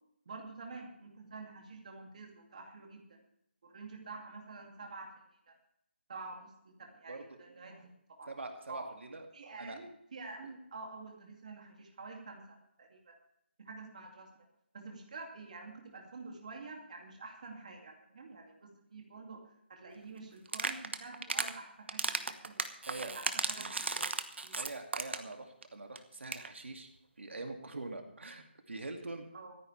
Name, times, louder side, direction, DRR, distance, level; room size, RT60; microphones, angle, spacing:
voice 1, 0.3-3.2 3.6-5.1 5.5-5.6 6.1-7.9 8.2-8.3 8.7-8.9 9.3-13.2 13.6-14.3 14.7-19.4 19.7-22.6 22.9-24.6 29.3-29.6, right 3 dB, 40° right, 1 dB, 2.5 m, -48 dB
voice 2, 7.1-7.4 8.3-9.3 9.6-9.8 22.9-23.1 24.6-26.9 27.2-29.3, right 2 dB, 85° right, 4 dB, 2.3 m, -44 dB
sound 1, 20.5-21.5 21.9-25.3 25.6-25.7 26.0-26.1 26.2-26.5, right 3 dB, 70° right, 1.3 m, -35 dB
25.0 x 9.7 x 3.4 m, 0.76 s
hypercardioid pair, 175°, 6 cm